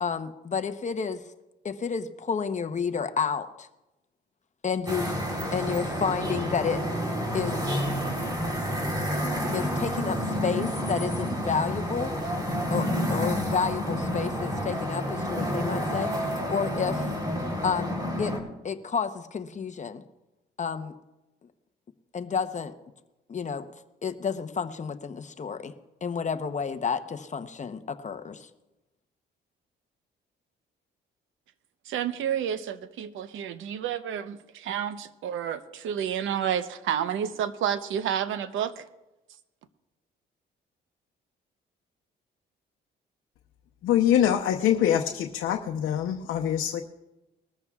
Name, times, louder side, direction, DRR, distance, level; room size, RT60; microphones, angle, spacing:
voice 1, 0.0-1.2 1.6-3.7 4.6-5.2 5.5-6.9 7.3-7.6 9.5-12.1 12.7-16.1 16.5-17.1 17.6-18.4 18.6-20.0 20.6-20.9 22.1-22.7 23.3-23.7 24.0-25.7 26.0-28.5, left 6 dB, 35° left, 9 dB, 0.9 m, -30 dB
sound 1, 4.9-18.4, equal, 20° right, 3.6 m, -29 dB
voice 2, 31.9-38.8, right 9 dB, 80° right, 12 dB, 0.9 m, -30 dB
voice 3, 43.8-46.8, left 10 dB, 80° left, 3 dB, 0.8 m, -24 dB
21.0 x 14.0 x 2.4 m, 0.98 s
cardioid pair, 90°, 20 cm